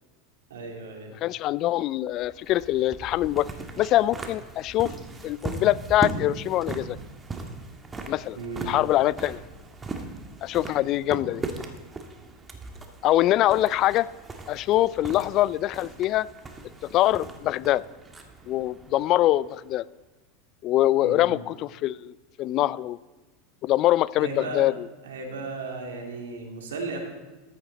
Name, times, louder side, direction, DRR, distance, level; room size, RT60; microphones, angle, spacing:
voice 1, 0.5-1.1 8.4-8.8 21.0-21.4 24.2-24.7 25.0-27.0, right 3 dB, 80° right, 2 dB, 2.5 m, -35 dB
voice 2, 1.2-3.5 3.8-4.9 5.2-7.0 8.1-8.4 8.6-9.4 10.4-11.4 13.0-14.1 14.5-16.3 16.9-17.8 18.5-19.8 20.6-22.1 22.4-23.0 23.6-24.7, left 14 dB, 50° left, 20 dB, 0.3 m, -23 dB
sound 1, 2.1-19.8, right 3 dB, 20° right, 1.5 m, -39 dB
13.5 x 9.0 x 4.0 m, 1.2 s
hypercardioid pair, 95°, 0 cm